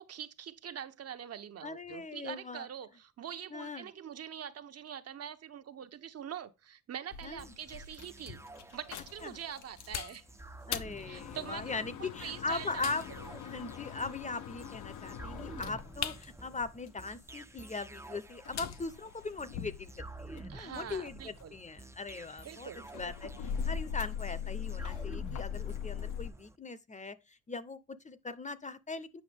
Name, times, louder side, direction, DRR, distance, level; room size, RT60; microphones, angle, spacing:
voice 1, 0.0-8.4 8.7-10.2 11.1-13.3 20.5-21.6 22.4-22.9, right 9 dB, 55° right, 1.0 m, -44 dB
voice 2, 1.6-2.7 3.5-3.9 7.2-7.4 9.2-9.4 10.7-13.0 13.4-29.2, left 3 dB, 25° left, 0.8 m, -40 dB
sound 1, 7.1-10.0 10.5-17.2 18.0-20.6 20.9-26.3, left 8 dB, 80° left, 1.0 m, -41 dB
sound 2, 7.4-26.6, right 2 dB, 10° right, 0.6 m, -51 dB
sound 3, 7.7-19.7, left 9 dB, 60° left, 1.0 m, -48 dB
8.6 x 5.8 x 3.5 m
cardioid pair, 90°, 30 cm